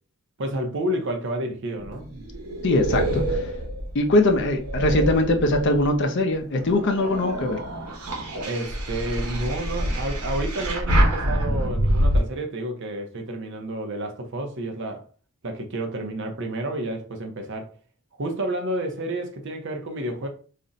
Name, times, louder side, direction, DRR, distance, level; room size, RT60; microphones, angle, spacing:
voice 1, 0.4-2.3 8.4-15.0 15.4-17.7 18.2-20.3, right 1 dB, 55° right, 0.6 m, -30 dB
sound 1, 1.8-6.0 6.5-12.2, equal, 80° right, 1.0 m, -26 dB
voice 2, 2.6-3.5 3.9-7.6, left 1 dB, 50° left, 0.5 m, -21 dB
2.5 x 2.1 x 3.8 m
head